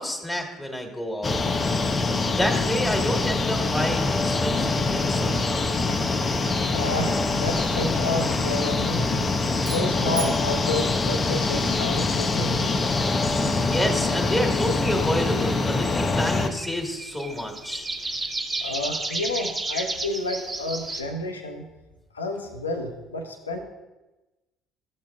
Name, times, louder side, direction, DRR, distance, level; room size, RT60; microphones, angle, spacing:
voice 1, 0.0-1.4 2.4-5.7 13.6-17.9, equal, 5° left, 2 dB, 1.6 m, -29 dB
sound 1, 1.2-16.5, left 3 dB, 30° left, 0.6 m, -24 dB
voice 2, 6.7-9.1 9.7-12.8 18.6-21.7 22.1-23.6, left 2 dB, 85° left, 4 dB, 0.6 m, -30 dB
sound 2, 9.6-11.9, right 6 dB, 70° right, 0.9 m, -40 dB
sound 3, 15.5-21.0, right 2 dB, 25° right, 0.9 m, -32 dB
12.0 x 7.3 x 2.3 m, 1.1 s
figure-of-eight pair, 55°, 0 cm